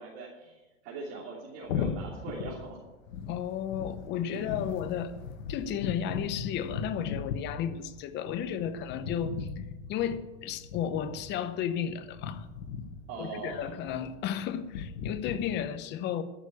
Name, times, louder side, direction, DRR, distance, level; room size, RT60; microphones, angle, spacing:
voice 1, 0.0-2.8 4.3-4.6 13.1-13.7, right 4 dB, 50° right, 3.2 m, -41 dB
sound 1, 1.6-15.5, left 6 dB, 80° left, 1.5 m, -39 dB
voice 2, 3.3-5.1 5.5-9.6 9.9-12.5 13.2-16.2, left 9 dB, 25° left, 0.8 m, -33 dB
13.5 x 6.8 x 8.3 m
supercardioid pair, 150°, 39 cm